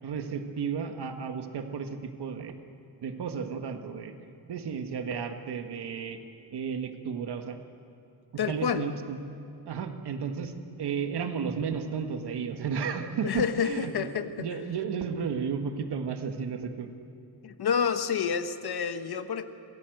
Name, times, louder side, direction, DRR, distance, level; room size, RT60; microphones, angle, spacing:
voice 1, 0.0-2.5 3.0-4.1 4.5-6.2 6.5-7.6 8.5-9.2 9.7-10.5 10.8-16.9, right 6 dB, 75° right, 6 dB, 1.7 m, -33 dB
voice 2, 8.4-8.8 13.2-14.5 17.4-19.4, left 7 dB, 70° left, 9 dB, 1.2 m, -29 dB
27.0 x 18.0 x 7.9 m, 2.9 s
wide cardioid pair, 145°, 40 cm